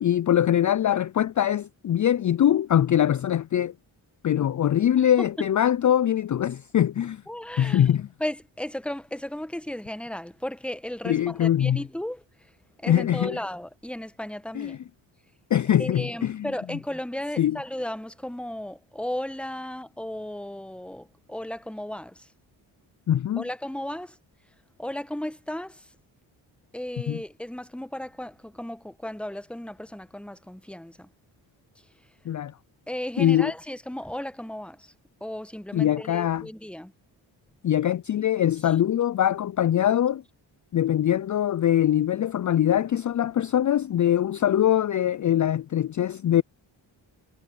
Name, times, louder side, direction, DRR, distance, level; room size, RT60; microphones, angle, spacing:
voice 1, 0.0-3.7 4.2-7.2 7.6-8.1 11.0-11.8 12.9-13.4 14.5-14.8 15.5-16.5 17.4-17.6 23.1-23.4 27.1-27.2 32.3-32.5 33.2-33.5 35.7-36.5 37.6-40.2 40.7-46.4, left 11 dB, 40° left, 0.5 m, -22 dB
voice 2, 7.3-7.9 8.2-12.2 12.8-14.8 15.8-22.2 23.4-24.1 24.8-25.8 26.7-31.1 32.9-34.9 35.2-36.9, left 1 dB, ahead, 1.3 m, -35 dB
supercardioid pair, 55°, 48 cm